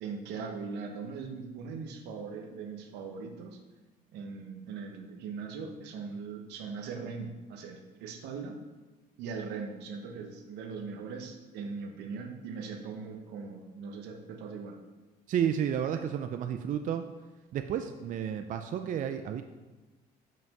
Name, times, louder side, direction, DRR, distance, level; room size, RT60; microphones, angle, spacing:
voice 1, 0.0-3.6 4.1-8.6 9.2-14.8, right 5 dB, 85° right, 4 dB, 1.0 m, -40 dB
voice 2, 15.3-17.0 17.5-19.4, right 9 dB, 50° right, 7 dB, 0.4 m, -31 dB
5.7 x 5.3 x 5.3 m, 1.2 s
cardioid pair, 110°, 17 cm